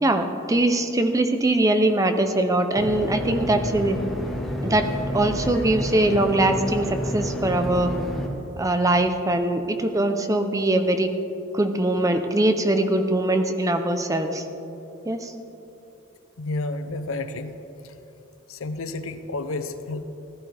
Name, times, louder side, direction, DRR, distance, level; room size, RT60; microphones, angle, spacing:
voice 1, 0.0-4.0 4.6-4.9 5.1-7.9 8.6-11.1 11.5-14.4 15.1-15.3, right 1 dB, 15° right, 7 dB, 0.5 m, -22 dB
sound 1, 2.7-8.3, equal, ahead, 1.2 m, -29 dB
voice 2, 16.4-17.5 18.5-20.0, left 2 dB, 70° left, 10 dB, 0.6 m, -30 dB
15.5 x 12.5 x 3.4 m, 3.0 s
head